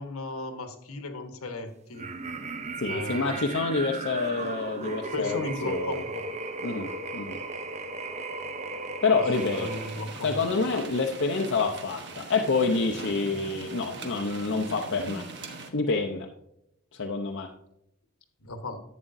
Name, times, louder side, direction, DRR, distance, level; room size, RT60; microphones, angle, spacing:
voice 1, 0.0-2.1 2.9-3.4 5.1-6.3 9.5-10.6 18.4-18.8, left 2 dB, 75° left, 7 dB, 1.2 m, -36 dB
sound 1, 1.9-10.3, right 3 dB, 30° right, 0.6 m, -36 dB
voice 2, 2.8-6.0 6.6-7.4 9.0-9.7 10.2-15.3 15.7-16.3 16.9-17.5, left 4 dB, 60° left, 0 dB, 0.7 m, -27 dB
sound 2, 9.3-15.7, right 3 dB, 55° right, 1.1 m, -41 dB
11.0 x 8.4 x 2.6 m, 0.79 s
head